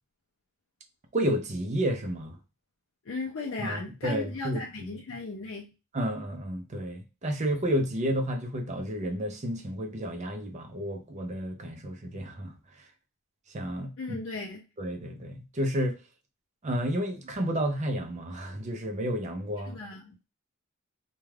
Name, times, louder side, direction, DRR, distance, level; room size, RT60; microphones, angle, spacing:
voice 1, 1.1-2.4 3.6-4.6 5.9-12.6 13.5-14.2 14.8-16.0 16.6-19.8, equal, 30° right, 0.5 m, -31 dB
voice 2, 3.0-5.7 14.0-14.6 19.6-20.1, left 3 dB, 60° left, 0.4 m, -36 dB
2.3 x 2.2 x 3.2 m
head